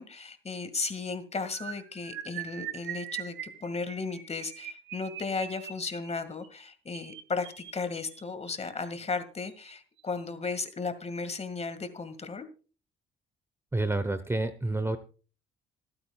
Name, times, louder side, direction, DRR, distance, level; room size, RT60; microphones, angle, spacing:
voice 1, 0.0-12.5, left 4 dB, 35° left, 9 dB, 2.0 m, -35 dB
sound 1, 1.5-8.7 9.5-9.7 10.0-10.2 10.5-10.7, right 10 dB, 80° right, 2.3 m, -42 dB
voice 2, 13.7-15.0, right 2 dB, 15° right, 11 dB, 0.9 m, -29 dB
26.5 x 8.8 x 2.3 m, 0.37 s
cardioid pair, 90°, 20 cm